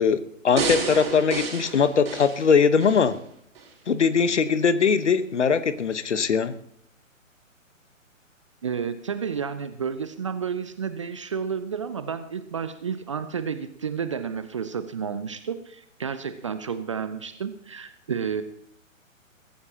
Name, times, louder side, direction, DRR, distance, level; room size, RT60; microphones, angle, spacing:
voice 1, 0.0-3.2 3.9-6.5, left 6 dB, 60° left, 13 dB, 1.2 m, -21 dB
sound 1, 0.6-3.1 3.6-3.7, right 4 dB, 45° right, 4.4 m, -30 dB
voice 2, 8.6-18.4, right 6 dB, 25° right, 12 dB, 0.5 m, -31 dB
22.0 x 14.5 x 2.9 m, 0.72 s
figure-of-eight pair, 125°, 40 cm